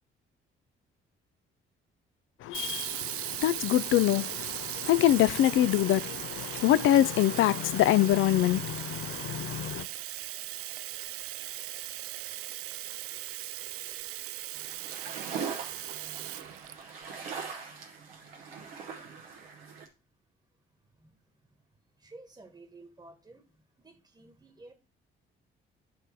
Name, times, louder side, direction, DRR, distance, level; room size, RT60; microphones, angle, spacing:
voice 1, 2.4-9.9, left 12 dB, 45° left, 0.4 m, -25 dB
Sink (filling or washing), 2.5-17.3, right 14 dB, 50° right, 0.4 m, -38 dB
sound 1, 14.5-19.9, right 6 dB, 80° right, 1.1 m, -41 dB
voice 2, 22.0-23.5 23.8-24.7, right 2 dB, 15° right, 1.4 m, -52 dB
9.6 x 3.3 x 4.4 m
figure-of-eight pair, 45°, 29 cm